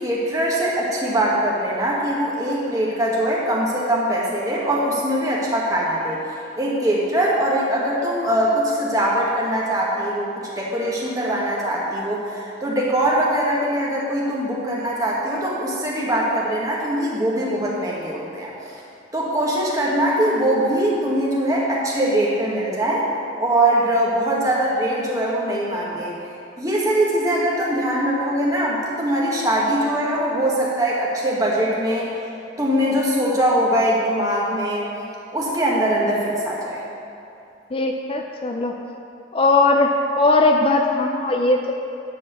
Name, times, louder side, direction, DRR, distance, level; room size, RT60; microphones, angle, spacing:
voice 1, 0.0-6.2 6.6-18.5 19.1-23.0 23.4-26.1 26.6-32.1 32.6-34.9 35.3-36.8, right 1 dB, 20° right, -5 dB, 1.6 m, -22 dB
voice 2, 37.7-38.7 39.3-39.9 40.2-41.7, left 3 dB, 30° left, 3 dB, 0.4 m, -19 dB
11.5 x 4.3 x 6.9 m, 2.6 s
head